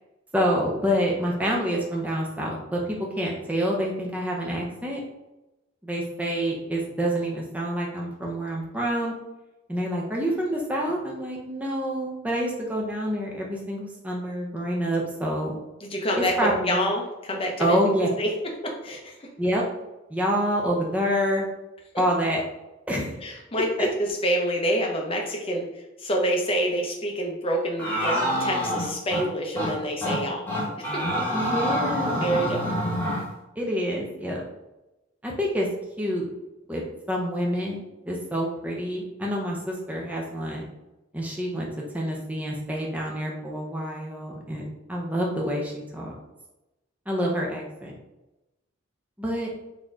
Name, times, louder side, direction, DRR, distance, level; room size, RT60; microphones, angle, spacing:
voice 1, 0.3-5.0 5.8-9.1 9.7-15.6 16.2-16.8 17.6-18.1 19.4-19.6 20.1-21.5 22.0-22.4 22.9-23.2 23.5-23.9 31.3-32.2 33.6-34.4 35.2-35.7 36.0-36.3 36.7-36.8 37.1-40.7 41.1-41.7 41.9-46.1 47.1-47.9 49.2-49.5, equal, 5° right, -2 dB, 0.7 m, -27 dB
voice 2, 15.8-17.8 18.2-18.3 18.6-19.3 23.2-30.4 30.8-31.5 32.2-32.8, equal, 25° left, 0 dB, 0.8 m, -27 dB
sound 1, 27.8-29.2 29.6-29.7 30.0-30.2 30.5-33.2, equal, 10° left, 1.2 m, -26 dB
4.2 x 2.9 x 3.7 m, 0.98 s
head